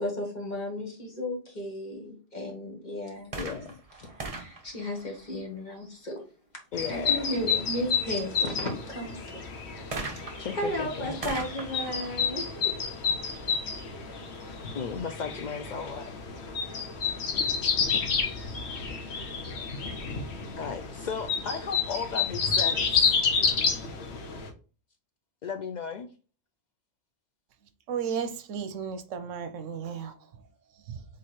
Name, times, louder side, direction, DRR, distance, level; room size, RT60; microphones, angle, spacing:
voice 1, 0.0-3.6 4.0-6.2 6.9-9.4 10.6-12.8, left 1 dB, 35° left, 1.4 m, -34 dB
sound 1, 3.2-5.8 9.9-13.5 14.3-14.4, right 3 dB, 30° right, 0.8 m, -41 dB
voice 2, 3.4-3.8 6.7-7.7 10.4-11.2 14.7-16.1 20.6-23.1 25.4-26.1, left 6 dB, 90° left, 0.4 m, -35 dB
sound 2, 6.7-24.5, left 6 dB, 60° left, 1.1 m, -30 dB
voice 3, 27.9-30.4 30.9-31.0, right 7 dB, 75° right, 1.0 m, -34 dB
3.8 x 3.2 x 4.1 m
omnidirectional pair, 1.3 m